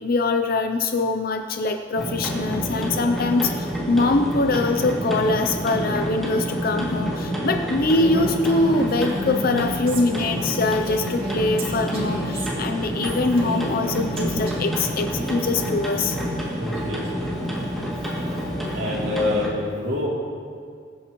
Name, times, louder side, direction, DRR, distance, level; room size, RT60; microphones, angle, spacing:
voice 1, 0.0-16.2, left 2 dB, 50° left, 6 dB, 0.5 m, -23 dB
sound 1, 2.0-19.5, equal, ahead, 2.5 m, -28 dB
Female speech woman speaking, 7.8-14.9, equal, 30° right, 2.4 m, -33 dB
voice 2, 16.6-17.1 18.7-20.1, left 2 dB, 70° right, -5 dB, 2.9 m, -26 dB
22.0 x 9.3 x 3.1 m, 2.1 s
head